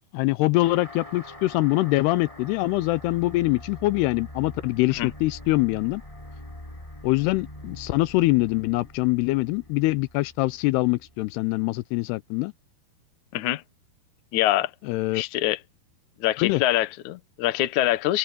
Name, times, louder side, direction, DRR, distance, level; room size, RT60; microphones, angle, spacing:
voice 1, 0.1-6.0 7.0-12.5 14.8-15.2 16.4-16.6, left 20 dB, 85° left, 2.6 m, -24 dB
sound 1, 0.6-11.6, left 1 dB, 10° left, 3.1 m, -44 dB
voice 2, 14.3-14.7 15.1-15.6 16.2-18.2, left 15 dB, 65° left, 2.0 m, -24 dB
omnidirectional pair, 4.8 m